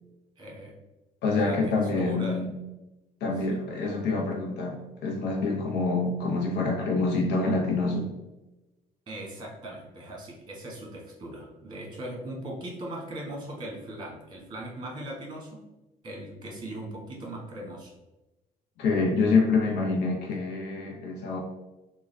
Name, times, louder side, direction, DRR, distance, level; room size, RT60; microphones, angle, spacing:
voice 1, 0.4-0.7 1.3-1.6 2.0-2.5 3.5-3.7 9.1-15.6 16.0-17.9, right 1 dB, 25° right, -2 dB, 1.3 m, -39 dB
voice 2, 1.2-2.5 3.2-8.1 18.8-21.4, left 3 dB, 85° left, 0 dB, 0.7 m, -26 dB
3.5 x 2.3 x 3.3 m, 1.0 s
cardioid pair, 110°, 17 cm